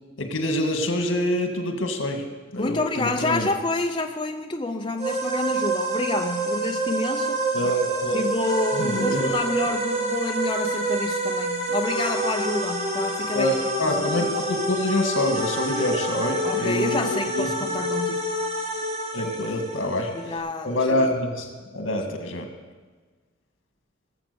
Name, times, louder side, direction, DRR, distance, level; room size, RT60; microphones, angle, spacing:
voice 1, 0.2-2.2 2.5-3.5 7.5-8.2 8.8-9.3 13.3-17.5 19.1-20.1 20.6-21.5 21.7-22.5, left 1 dB, 80° left, 5 dB, 2.0 m, -26 dB
voice 2, 2.6-7.4 8.1-13.9 16.4-18.3 19.8-20.8, left 2 dB, 25° left, 3 dB, 0.7 m, -28 dB
sound 1, 5.0-20.4, right 1 dB, 30° right, 1.8 m, -27 dB
18.5 x 7.3 x 6.9 m, 1.4 s
head